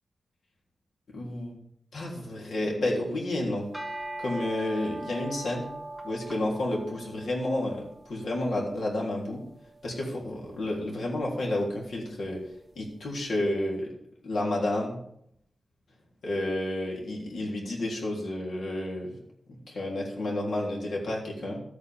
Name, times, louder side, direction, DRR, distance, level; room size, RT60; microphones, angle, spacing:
voice 1, 1.1-1.6 1.9-3.7 4.2-5.7 6.0-9.4 9.8-12.4 12.7-13.9 14.2-15.0 16.2-19.2 19.5-21.6, left 1 dB, 85° left, -2 dB, 3.3 m, -30 dB
sound 1, 3.6-12.9, right 2 dB, 10° right, 1.2 m, -43 dB
13.5 x 8.6 x 3.6 m, 0.73 s
wide cardioid pair, 160°, 0 cm